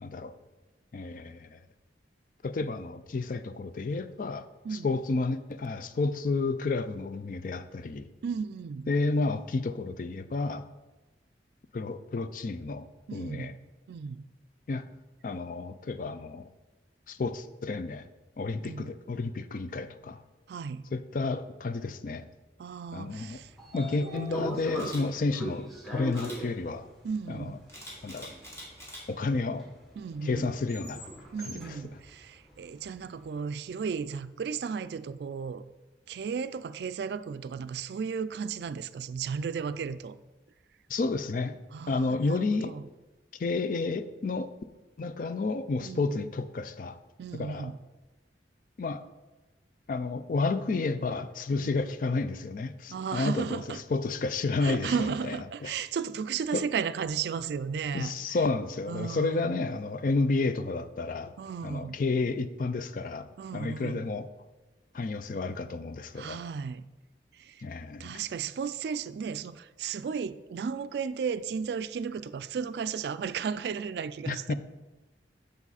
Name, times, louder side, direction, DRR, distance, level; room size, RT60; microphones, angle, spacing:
voice 1, 0.0-0.3 0.9-1.6 2.4-4.5 4.8-8.1 8.9-10.7 11.7-12.9 13.1-13.5 14.7-14.8 15.2-16.5 17.1-18.0 18.4-20.2 20.9-22.2 22.9-23.4 23.7-26.9 27.3-27.5 28.0-28.3 29.1-29.7 30.2-31.0 31.4-31.6 40.9-41.6 41.9-42.7 43.4-44.5 45.0-47.0 47.3-47.7 48.8-49.0 49.9-53.6 53.9-54.9 55.6-55.7 56.5-56.6 57.9-61.3 61.6-64.3 64.9-66.4 67.6-68.2 74.3-74.5, left 3 dB, 50° left, 12 dB, 0.4 m, -31 dB
voice 2, 8.2-8.9 13.1-13.5 13.9-14.2 18.6-18.9 20.5-20.9 22.6-24.5 27.0-27.6 30.0-30.5 31.3-35.6 36.1-40.2 41.7-42.8 45.8-46.2 47.2-47.8 51.6-51.7 52.9-53.8 54.6-58.1 58.9-59.5 61.4-62.0 63.4-64.1 66.1-66.8 67.3-67.6 68.0-74.5, right 6 dB, 65° right, 14 dB, 0.3 m, -34 dB
Train / Sliding door, 23.1-33.3, right 1 dB, ahead, 1.6 m, -42 dB
Camera, 24.8-25.0 26.1-26.4 27.7-29.0 29.5-29.8, equal, 15° left, 2.0 m, -44 dB
7.2 x 6.6 x 4.1 m, 1.1 s
head